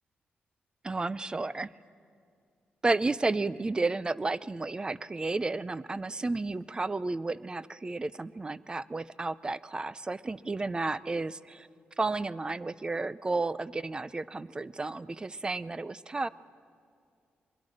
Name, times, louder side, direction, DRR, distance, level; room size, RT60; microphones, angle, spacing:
voice 1, 0.8-1.7 2.8-11.7 12.0-16.3, right 3 dB, 20° right, 18 dB, 0.4 m, -32 dB
23.5 x 22.0 x 6.4 m, 2.3 s
cardioid pair, 95°, 4 cm